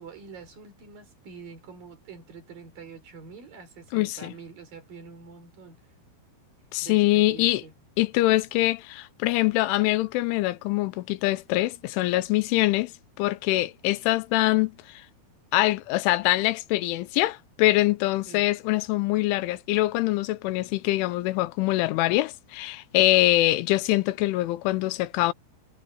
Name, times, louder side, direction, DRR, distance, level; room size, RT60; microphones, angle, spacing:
voice 1, 0.0-5.8 6.8-7.7 18.3-18.5, right 5 dB, 50° right, 5.7 m, -45 dB
voice 2, 3.9-4.3 6.7-7.6 8.0-12.9 13.2-14.7 15.5-25.3, left 17 dB, 90° left, 3.4 m, -24 dB
omnidirectional pair, 5.4 m